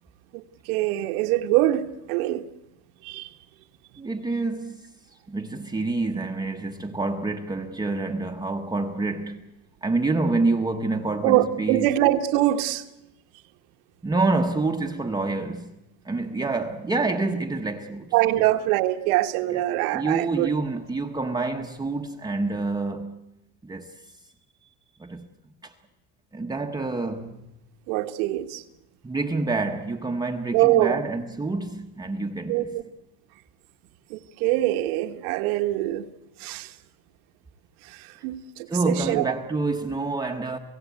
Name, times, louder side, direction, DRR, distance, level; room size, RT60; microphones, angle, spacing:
voice 1, 0.3-2.4 3.0-3.3 11.2-12.8 18.1-20.5 27.9-28.6 30.5-31.0 32.5-32.7 34.1-36.1 36.4-36.7 37.8-39.2, right 15 dB, 85° right, 1.6 m, -24 dB
voice 2, 4.0-4.9 5.3-9.5 9.8-11.9 14.0-15.7 16.0-18.1 19.5-19.6 19.9-23.2 23.6-24.1 25.0-25.3 25.6-25.7 26.3-27.5 29.0-32.7 38.7-40.6, right 3 dB, 10° right, 0.8 m, -27 dB
28.5 x 17.0 x 8.2 m
cardioid pair, 160°, 42 cm